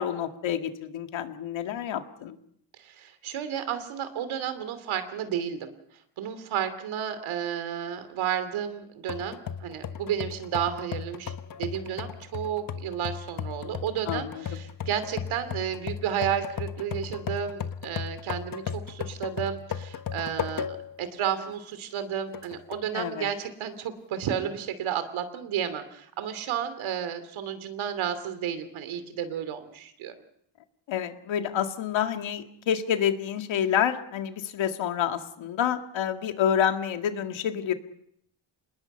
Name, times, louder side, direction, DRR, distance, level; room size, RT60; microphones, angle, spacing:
voice 1, 0.0-2.3 14.1-14.4 22.9-23.3 30.9-37.7, left 9 dB, 70° left, 6 dB, 2.1 m, -28 dB
voice 2, 2.8-5.7 6.2-11.3 11.6-30.1, right 9 dB, 75° right, 11 dB, 2.9 m, -32 dB
sound 1, 9.1-21.0 21.5-21.6 22.3-22.9, left 7 dB, 45° left, 1.2 m, -36 dB
26.5 x 20.5 x 5.6 m, 0.69 s
cardioid pair, 110°, 48 cm